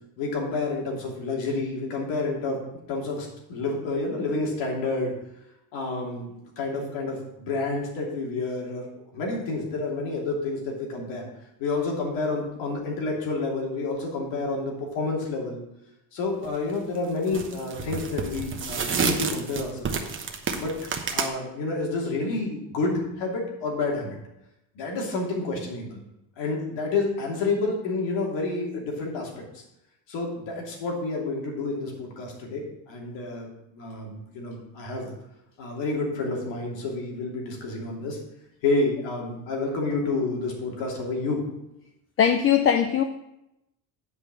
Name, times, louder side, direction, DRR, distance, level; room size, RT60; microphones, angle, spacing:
voice 1, 0.2-2.6 2.9-5.1 5.7-8.9 9.1-11.2 11.6-15.6 16.1-19.9 20.6-24.2 24.7-26.0 26.4-29.6 30.1-35.1 35.6-38.2 38.6-41.4, left 3 dB, 80° left, -1 dB, 2.9 m, -29 dB
sound 1, 16.4-16.7 17.3-21.3, right 5 dB, 30° right, 1.0 m, -29 dB
voice 2, 42.2-43.0, left 8 dB, 30° left, 7 dB, 0.5 m, -20 dB
8.3 x 5.5 x 6.2 m, 0.87 s
cardioid pair, 125°, 43 cm